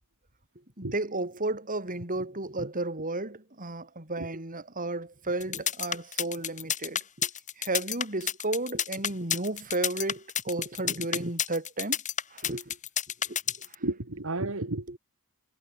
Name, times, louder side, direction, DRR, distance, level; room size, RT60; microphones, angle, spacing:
voice 1, 0.8-7.3 7.6-12.0 12.3-12.8 13.3-13.4 14.9-15.0, right 2 dB, 40° right, 4.9 m, -33 dB
sound 1, 5.4-13.7, left 9 dB, 35° left, 2.4 m, -30 dB
voice 2, 13.8-15.0, right 2 dB, 65° right, 2.0 m, -32 dB
head